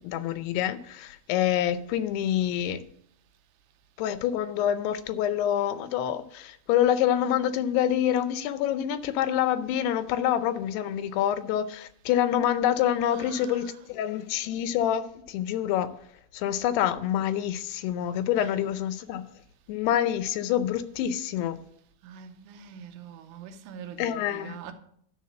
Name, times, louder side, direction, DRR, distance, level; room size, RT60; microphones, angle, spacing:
voice 1, 0.0-2.8 4.0-15.9 16.3-19.2 19.7-21.6 24.0-24.6, left 10 dB, 85° left, 2.6 m, -27 dB
voice 2, 13.1-13.8 18.4-18.5 22.0-24.7, right 8 dB, 85° right, 2.8 m, -44 dB
11.5 x 4.0 x 7.4 m
omnidirectional pair, 4.7 m